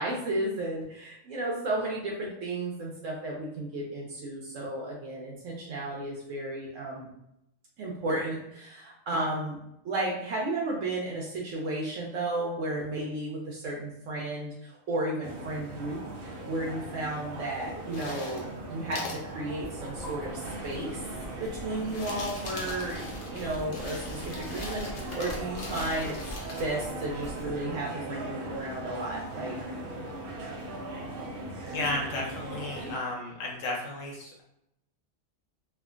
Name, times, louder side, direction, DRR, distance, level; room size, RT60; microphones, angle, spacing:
voice 1, 0.0-7.1 7.8-9.6 9.8-21.0 21.4-23.1 23.3-26.2 26.6-29.6 30.4-30.8, right 2 dB, 75° right, -3 dB, 0.9 m, -33 dB
sound 1, 15.2-33.0, right 1 dB, 60° right, 0.6 m, -39 dB
sound 2, 17.9-18.5 18.9-19.2 20.0-20.1 21.7-26.6, left 2 dB, 55° left, 0.7 m, -41 dB
Writing, 19.6-27.8, equal, 25° left, 0.8 m, -45 dB
voice 2, 31.7-34.4, left 2 dB, 75° left, -1 dB, 1.1 m, -33 dB
3.4 x 2.1 x 2.3 m, 0.82 s
omnidirectional pair, 1.3 m